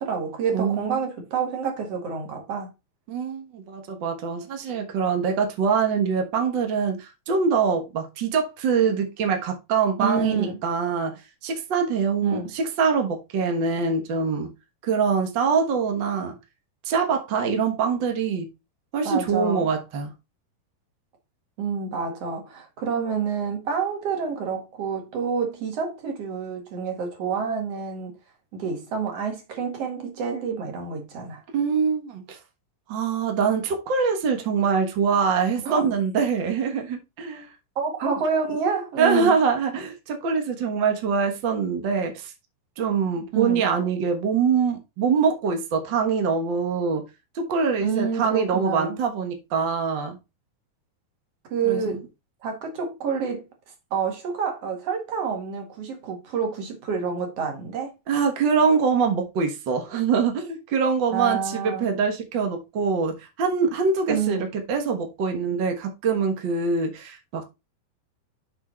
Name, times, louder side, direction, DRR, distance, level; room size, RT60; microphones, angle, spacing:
voice 1, 0.0-2.7 10.0-10.6 12.2-12.5 19.0-19.7 21.6-28.1 28.5-31.4 35.6-35.8 37.8-39.4 43.3-43.6 47.8-49.0 51.5-52.0 52.4-53.4 53.9-57.9 61.1-61.9 64.1-64.4, right 6 dB, 50° right, 2.6 m, -28 dB
voice 2, 0.5-1.0 3.1-14.5 14.8-16.3 16.8-18.5 18.9-20.1 31.5-32.4 32.9-37.5 39.0-42.3 42.8-47.0 47.3-50.2 51.6-51.9 58.1-67.4, right 5 dB, 80° right, 1.0 m, -24 dB
6.4 x 5.4 x 4.3 m
omnidirectional pair, 4.3 m